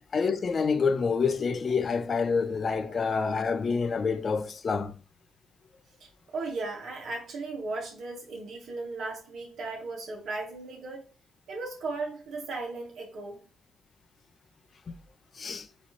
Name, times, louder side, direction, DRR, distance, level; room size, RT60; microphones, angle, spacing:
voice 1, 0.1-4.9 15.4-15.6, left 5 dB, 40° left, 0.5 m, -27 dB
voice 2, 6.0-11.0 11.5-13.4, right 3 dB, 65° right, 1.7 m, -36 dB
4.1 x 3.0 x 2.9 m
cardioid pair, 90°, 0 cm